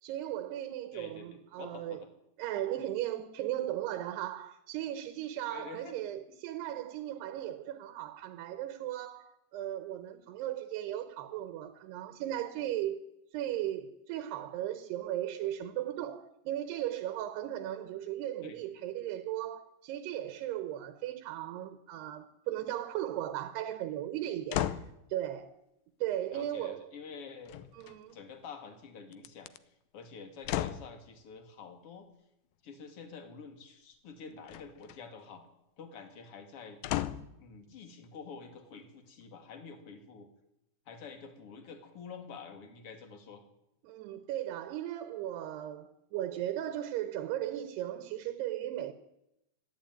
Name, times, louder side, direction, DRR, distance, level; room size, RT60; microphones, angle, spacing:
voice 1, 0.0-2.0 2.4-13.0 13.3-24.8 25.1-25.5 26.0-26.9 27.7-28.2 43.8-48.9, right 12 dB, 75° right, 3.1 m, -37 dB
voice 2, 0.9-2.1 5.5-6.0 18.4-18.6 26.3-27.7 28.1-32.1 32.6-35.4 35.8-36.8 37.4-40.3 40.9-43.4, left 5 dB, 40° left, 2.6 m, -48 dB
sound 1, 24.5-25.0 27.5-28.2 29.1-29.6 30.4-30.9 34.5-35.0 36.8-37.4 38.0-38.1, left 13 dB, 80° left, 2.1 m, -34 dB
25.5 x 11.0 x 9.3 m
omnidirectional pair, 4.9 m